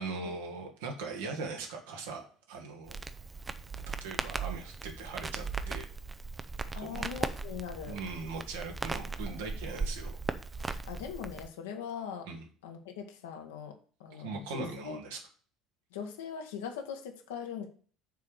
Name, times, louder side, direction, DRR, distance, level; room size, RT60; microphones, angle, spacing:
voice 1, 0.0-3.0 4.0-5.9 6.8-7.1 7.9-10.2 12.3-12.5 14.1-15.2, right 4 dB, 65° right, 1 dB, 1.9 m, -40 dB
Crackle, 2.9-11.5, right 4 dB, 20° right, 0.7 m, -38 dB
voice 2, 6.7-8.0 10.6-12.3 12.6-15.0 15.9-17.7, left 7 dB, 65° left, 4 dB, 1.4 m, -41 dB
6.8 x 4.9 x 6.7 m, 0.42 s
figure-of-eight pair, 60°, 0 cm